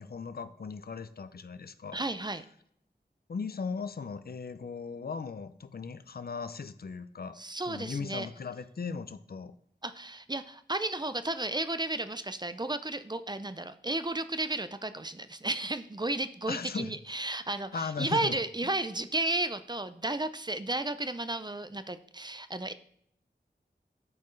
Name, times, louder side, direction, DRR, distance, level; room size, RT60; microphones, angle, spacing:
voice 1, 0.0-2.0 3.3-7.4 7.7-9.6 16.5-17.0 17.7-18.4, left 5 dB, 55° left, 12 dB, 0.5 m, -38 dB
voice 2, 1.9-2.4 7.4-8.3 9.8-22.7, right 2 dB, 25° right, 11 dB, 0.5 m, -33 dB
12.0 x 4.3 x 3.2 m, 0.69 s
wide cardioid pair, 55°, 18 cm